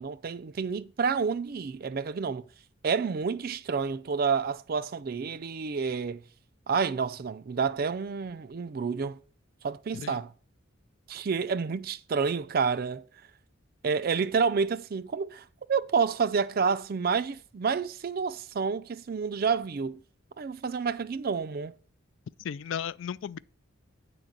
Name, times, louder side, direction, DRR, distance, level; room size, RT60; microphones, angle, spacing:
voice 1, 0.0-2.4 2.8-6.2 6.7-9.2 9.6-10.3 11.1-13.0 13.8-20.0 20.4-21.7, right 5 dB, 45° right, 0.4 m, -29 dB
voice 2, 22.4-23.4, left 8 dB, 65° left, 0.3 m, -35 dB
9.7 x 3.9 x 7.2 m
head